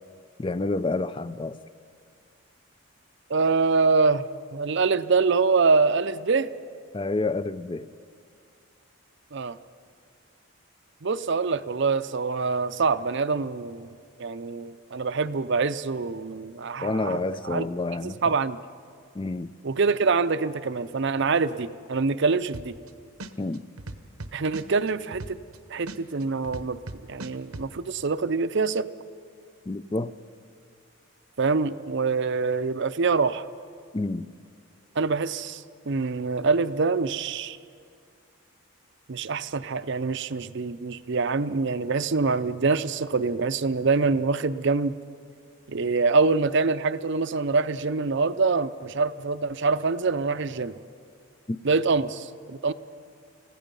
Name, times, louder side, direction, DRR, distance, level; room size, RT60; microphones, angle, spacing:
voice 1, 0.4-1.6 6.9-7.9 16.8-18.2 19.1-19.5 23.4-23.6 29.7-30.1 33.9-34.3 51.5-51.6, left 2 dB, 25° left, 0.4 m, -28 dB
voice 2, 3.3-4.2 4.5-6.5 9.3-9.6 11.0-17.7 18.0-18.6 19.6-22.7 24.3-25.4 25.7-26.8 27.1-28.9 31.4-33.5 35.0-37.6 39.1-45.0 45.7-50.8 51.6-52.7, right 4 dB, 55° right, 0.6 m, -25 dB
sound 1, 22.5-22.9 23.2-25.6 25.9-27.7, right 2 dB, 85° right, 1.0 m, -38 dB
30.0 x 16.0 x 5.4 m
head